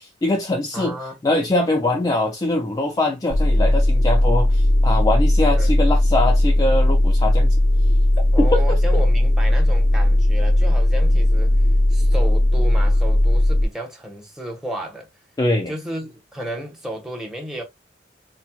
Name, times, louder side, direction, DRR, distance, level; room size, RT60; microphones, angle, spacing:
voice 1, 0.0-7.6 8.2-9.0 15.4-15.7, left 2 dB, 20° left, 0.4 m, -23 dB
voice 2, 0.7-1.2 5.5-5.7 8.3-11.6 11.9-15.1 15.7-17.6, equal, ahead, 0.9 m, -32 dB
sound 1, 3.3-13.7, left 1 dB, 65° left, 0.7 m, -17 dB
4.3 x 2.2 x 2.2 m
head